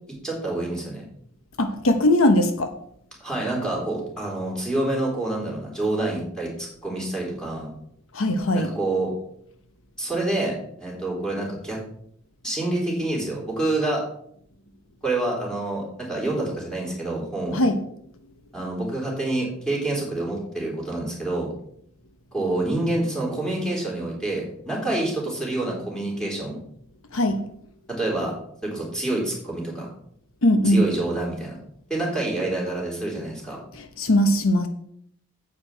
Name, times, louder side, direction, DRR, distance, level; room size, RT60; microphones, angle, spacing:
voice 1, 0.2-1.0 3.2-7.7 8.5-9.1 10.0-11.8 12.4-14.0 15.0-17.6 18.5-21.5 22.3-26.6 27.9-28.3 28.6-29.9 30.6-31.6 31.9-33.6, right 2 dB, 5° left, -3 dB, 3.8 m, -27 dB
voice 2, 1.6-2.7 8.1-8.7 17.5-17.7 27.1-27.4 30.4-30.9 33.7-34.7, left 1 dB, 80° left, 8 dB, 1.0 m, -20 dB
9.2 x 8.3 x 4.5 m, 0.69 s
head